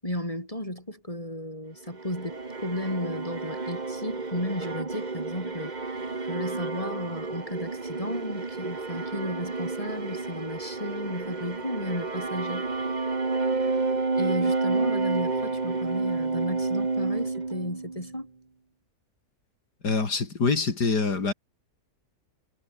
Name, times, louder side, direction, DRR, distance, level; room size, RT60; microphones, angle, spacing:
voice 1, 0.0-5.7 6.2-12.7 14.1-18.3, left 1 dB, 20° left, 7.4 m, -34 dB
sound 1, 1.9-18.2, right 3 dB, 25° right, 1.7 m, -30 dB
voice 2, 19.8-21.3, left 4 dB, 80° left, 3.7 m, -25 dB
omnidirectional pair, 1.7 m